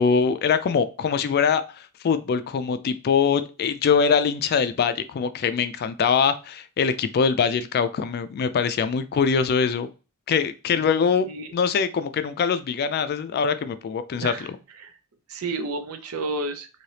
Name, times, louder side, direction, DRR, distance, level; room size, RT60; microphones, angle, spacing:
voice 1, 0.0-1.6 2.0-9.9 10.3-11.3 11.5-14.5, left 6 dB, 45° left, 0.3 m, -23 dB
voice 2, 15.3-16.7, right 2 dB, 80° right, 0.5 m, -31 dB
3.2 x 2.8 x 2.8 m
head